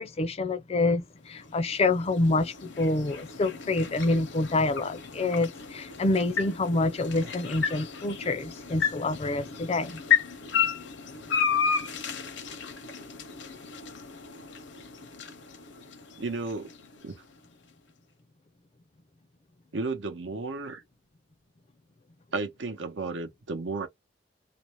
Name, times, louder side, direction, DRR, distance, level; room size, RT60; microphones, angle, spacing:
voice 1, 0.0-10.0 10.6-10.7, left 2 dB, 35° left, 0.5 m, -27 dB
sound 1, 1.3-17.5, left 8 dB, 70° left, 0.7 m, -33 dB
voice 2, 16.2-16.7 17.0-17.1 19.7-20.8 22.3-23.9, right 3 dB, 90° right, 0.8 m, -33 dB
2.5 x 2.1 x 2.9 m
head